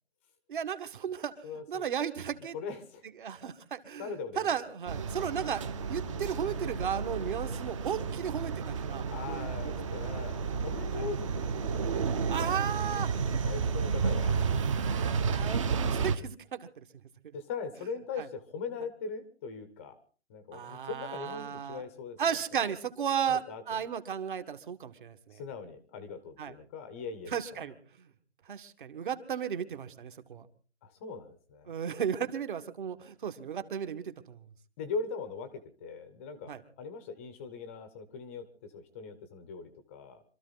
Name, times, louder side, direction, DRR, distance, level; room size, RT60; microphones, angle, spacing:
voice 1, 0.5-1.3 1.7-2.6 3.2-5.6 5.9-9.5 10.9-11.0 12.3-13.1 14.3-16.8 17.2-17.4 18.2-18.3 20.5-21.8 22.2-25.4 26.4-26.5 27.3-28.1 28.5-30.5 31.7-34.5 36.5-36.6, right 8 dB, 40° right, 9 dB, 1.7 m, -35 dB
voice 2, 1.4-1.9 2.5-3.1 4.0-4.5 5.4-5.5 9.1-14.5 17.3-19.9 20.3-22.7 23.3-23.9 25.3-27.7 30.8-31.8 34.8-40.2, left 5 dB, 10° left, 11 dB, 0.8 m, -41 dB
sound 1, 4.9-16.1, right 5 dB, 25° right, 0.9 m, -31 dB
26.0 x 13.5 x 4.0 m, 0.40 s
hypercardioid pair, 160°, 37 cm